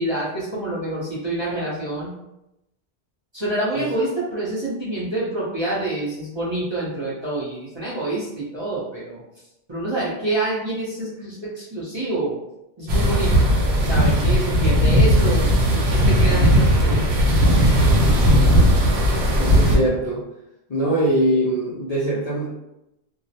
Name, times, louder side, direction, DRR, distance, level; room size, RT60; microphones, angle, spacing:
voice 1, 0.0-2.1 3.3-9.2 9.7-12.4 12.8-17.1, right 2 dB, 30° right, -8 dB, 0.6 m, -27 dB
sound 1, 12.9-19.8, equal, 85° right, 0.9 m, -17 dB
voice 2, 19.3-20.2 20.7-22.5, right 1 dB, 50° left, -7 dB, 0.5 m, -22 dB
2.3 x 2.0 x 2.7 m, 0.88 s
omnidirectional pair, 1.1 m